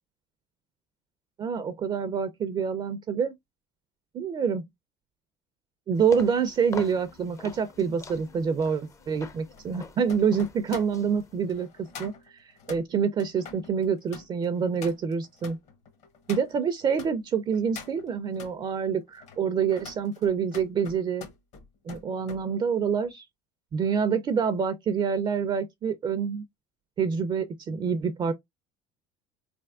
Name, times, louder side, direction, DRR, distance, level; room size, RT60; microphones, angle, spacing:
voice 1, 1.4-3.3 4.1-4.6 5.9-11.7 12.0-15.6 16.3-21.3 21.9-23.2 23.7-26.4 27.0-28.3, right 6 dB, 35° right, 0.4 m, -27 dB
sound 1, 5.9-11.6, left 4 dB, 20° left, 0.5 m, -45 dB
sound 2, 6.5-17.1 17.5-18.6 19.1-22.4 22.8-23.1, left 5 dB, 55° left, 1.0 m, -46 dB
3.9 x 3.3 x 2.4 m
cardioid pair, 115°, 14 cm